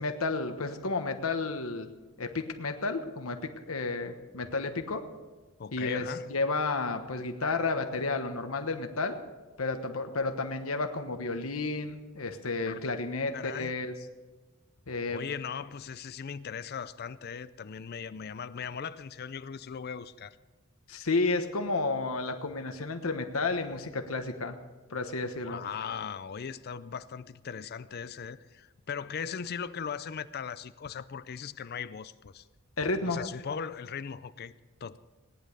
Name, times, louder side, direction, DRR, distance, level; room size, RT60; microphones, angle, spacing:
voice 1, 0.0-1.9 2.2-3.4 3.7-5.0 5.7-9.2 9.6-13.9 14.9-15.2 20.9-24.6 24.9-25.6 32.8-33.2, left 3 dB, 85° left, 1.2 m, -31 dB
voice 2, 5.6-6.4 12.6-12.8 13.3-13.7 15.1-20.4 25.4-32.5 33.1-34.5 34.8-35.0, left 6 dB, 50° left, 0.4 m, -38 dB
18.0 x 10.5 x 6.6 m
head